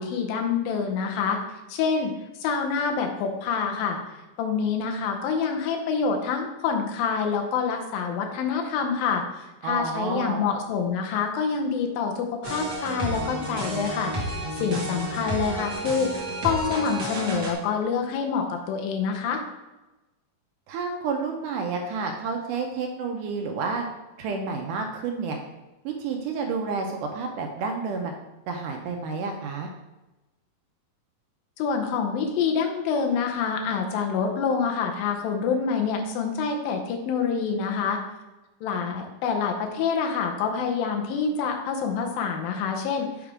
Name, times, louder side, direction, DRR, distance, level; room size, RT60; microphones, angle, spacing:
voice 1, 0.0-1.4 1.7-2.1 2.4-4.0 4.4-19.4 31.6-38.0 38.6-43.3, left 5 dB, 85° left, 3 dB, 2.6 m, -27 dB
voice 2, 9.6-10.4 20.7-23.9 24.2-25.4 25.9-28.1 28.5-29.7, right 4 dB, 80° right, 3 dB, 2.0 m, -30 dB
sound 1, 12.4-17.5, right 1 dB, 60° right, 1.1 m, -31 dB
7.0 x 3.4 x 4.8 m, 1.0 s
omnidirectional pair, 4.0 m